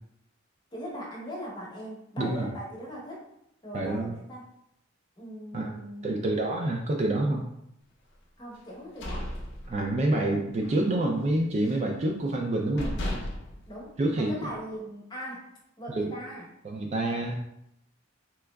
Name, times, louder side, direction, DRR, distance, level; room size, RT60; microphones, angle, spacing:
voice 1, 0.7-3.3 3.6-4.5 5.2-6.6 8.4-9.3 13.7-15.4 15.8-16.5, equal, 20° left, -4 dB, 0.9 m, -40 dB
voice 2, 2.2-2.5 3.7-4.2 5.5-5.8 6.0-7.4 9.7-13.0 14.0-14.3 15.9-16.1 16.6-17.4, right 1 dB, 35° right, 1 dB, 0.3 m, -27 dB
sound 1, 8.7-10.2 10.6-10.8 11.2-11.9 12.4-12.5 12.8-14.6, left 1 dB, 60° left, 0.6 m, -35 dB
3.5 x 2.9 x 2.2 m, 0.78 s
head